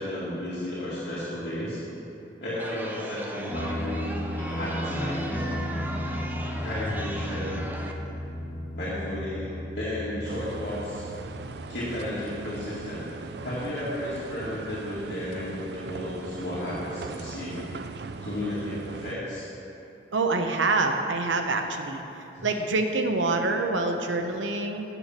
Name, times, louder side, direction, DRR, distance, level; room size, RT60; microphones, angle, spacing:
voice 1, 0.0-1.8 2.4-5.2 6.5-7.7 8.8-9.5 9.7-11.1 11.7-13.0 13.4-17.6 18.2-19.5 22.3-22.5, left 1 dB, 60° left, -11 dB, 2.2 m, -33 dB
Chatter, 2.6-7.9, right 1 dB, 10° right, 0.6 m, -38 dB
sound 1, 3.5-13.6, equal, 10° left, 1.3 m, -35 dB
sound 2, 10.2-19.1, right 4 dB, 60° right, 0.4 m, -39 dB
voice 2, 20.1-22.0 22.4-24.8, right 3 dB, 85° right, 5 dB, 0.9 m, -26 dB
8.4 x 6.8 x 7.4 m, 3.0 s
head